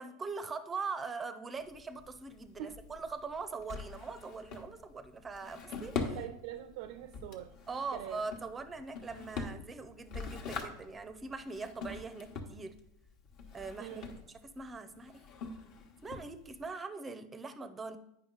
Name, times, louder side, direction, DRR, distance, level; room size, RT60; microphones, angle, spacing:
voice 1, 0.0-6.2 7.7-12.8 13.5-14.0 14.4-15.3 16.0-18.0, right 4 dB, 15° right, 12 dB, 0.5 m, -42 dB
Drawer open or close, 1.6-16.7, left 4 dB, 50° left, 1.1 m, -44 dB
voice 2, 6.1-7.5 7.9-8.3 13.8-14.1, right 11 dB, 65° right, 12 dB, 0.4 m, -43 dB
8.8 x 5.4 x 3.9 m, 0.79 s
supercardioid pair, 130°, 0 cm